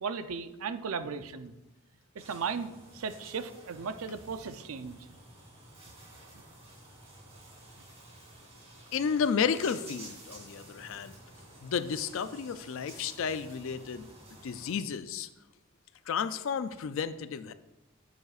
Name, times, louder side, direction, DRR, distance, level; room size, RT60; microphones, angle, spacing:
voice 1, 0.0-1.5 2.1-5.1, right 5 dB, 80° right, 10 dB, 0.5 m, -36 dB
sound 1, 2.2-14.8, right 1 dB, 30° right, 2.8 m, -52 dB
voice 2, 8.9-11.2 11.6-14.1 14.4-15.3 16.1-17.5, left 6 dB, 65° left, 12 dB, 0.4 m, -32 dB
9.3 x 7.9 x 2.4 m, 0.99 s
head